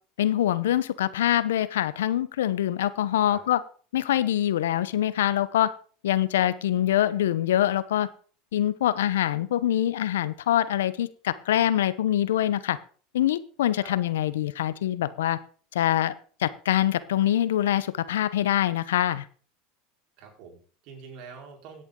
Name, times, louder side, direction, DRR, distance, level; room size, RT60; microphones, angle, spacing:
voice 1, 0.2-3.6 3.9-5.7 6.0-8.1 8.5-12.8 13.1-15.4 15.7-16.1 16.4-19.2, left 12 dB, 80° left, 16 dB, 0.9 m, -24 dB
voice 2, 20.2-21.8, right 5 dB, 60° right, 2 dB, 5.0 m, -46 dB
16.5 x 10.5 x 3.8 m, 0.43 s
hypercardioid pair, 90°, 0 cm